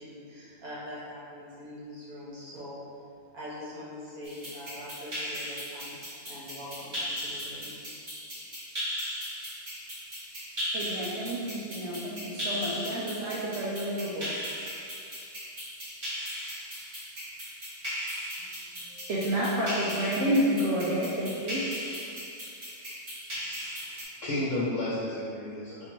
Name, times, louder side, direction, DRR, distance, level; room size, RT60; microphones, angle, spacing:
voice 1, 0.0-2.8 3.3-6.0 6.2-7.7, left 1 dB, 90° right, -9 dB, 1.8 m, -43 dB
sound 1, 4.2-24.0, equal, 40° right, 1.7 m, -37 dB
voice 2, 10.7-14.3 18.8-21.6, equal, 65° right, -7 dB, 1.0 m, -30 dB
voice 3, 23.7-25.9, left 1 dB, 60° left, -8 dB, 1.1 m, -32 dB
4.4 x 2.6 x 4.5 m, 2.4 s
omnidirectional pair, 1.5 m